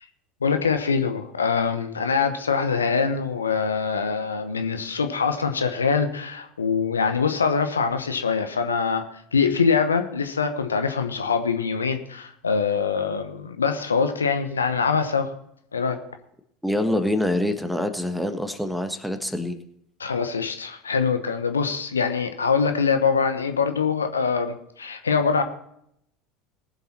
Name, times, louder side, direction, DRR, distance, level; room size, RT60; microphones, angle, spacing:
voice 1, 0.4-9.0 9.3-15.3 15.7-16.0 20.0-25.4, left 5 dB, 80° left, 7 dB, 1.0 m, -24 dB
voice 2, 16.6-19.6, left 1 dB, ahead, 8 dB, 1.4 m, -25 dB
20.0 x 7.2 x 4.3 m, 0.74 s
figure-of-eight pair, 70°, 0 cm